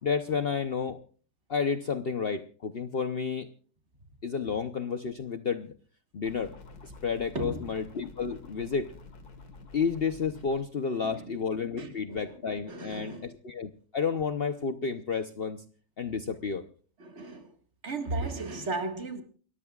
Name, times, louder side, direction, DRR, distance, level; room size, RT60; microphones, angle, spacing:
voice 1, 0.0-1.0 1.5-3.5 4.2-5.7 6.1-6.5 6.8-8.9 9.7-15.6 16.0-16.6, left 5 dB, 50° left, 0.9 m, -31 dB
sound 1, 6.2-10.6, left 3 dB, 85° left, 2.4 m, -49 dB
voice 2, 7.3-7.8 11.0-11.4 11.8-12.4 12.7-13.3 17.0-17.5 17.8-19.2, right 3 dB, 45° right, 2.1 m, -36 dB
29.5 x 14.0 x 2.4 m
omnidirectional pair, 1.6 m